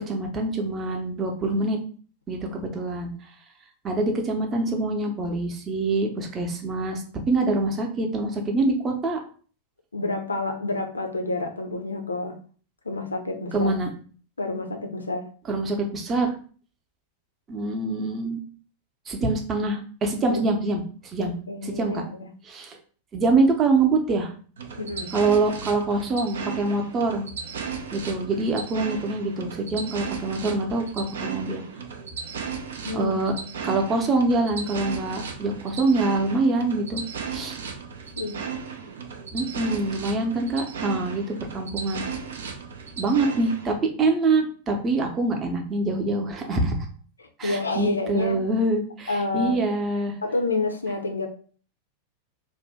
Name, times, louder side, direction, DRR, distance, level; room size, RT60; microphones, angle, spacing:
voice 1, 0.1-1.8 2.3-3.1 3.8-9.2 13.5-13.9 15.5-16.3 17.5-18.4 19.1-20.8 21.1-21.3 21.6-22.0 22.4-22.8 23.1-24.3 25.1-27.3 27.9-31.6 32.9-33.3 33.6-37.0 37.3-37.6 39.3-42.1 43.0-46.8 47.4-50.1, right 2 dB, 25° right, 3 dB, 0.7 m, -25 dB
voice 2, 9.9-12.4 12.9-13.7 14.4-15.3 20.3-20.4 21.2-22.3 24.8-25.1 32.8-33.1 38.2-38.4 47.4-48.4 49.1-49.6 50.2-51.3, left 3 dB, 75° left, 6 dB, 0.4 m, -29 dB
sound 1, 24.6-43.7, right 6 dB, 65° right, 0.4 m, -35 dB
2.6 x 2.1 x 3.4 m, 0.42 s
figure-of-eight pair, 90°, 0 cm